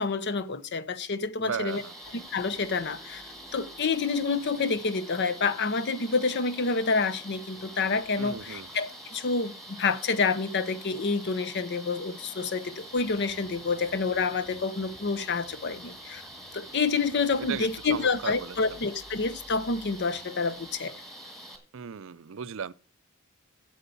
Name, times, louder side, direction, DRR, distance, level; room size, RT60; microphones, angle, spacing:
voice 1, 0.0-1.8 2.1-3.2 3.5-16.2 16.5-20.9, left 4 dB, 55° left, 0.7 m, -28 dB
voice 2, 1.4-1.9 8.2-8.7 17.5-18.8 21.7-22.7, right 7 dB, 65° right, 0.5 m, -36 dB
sound 1, 1.7-21.6, equal, ahead, 2.0 m, -45 dB
sound 2, 2.0-20.9, left 1 dB, 80° left, 5.9 m, -57 dB
8.3 x 7.8 x 6.8 m
head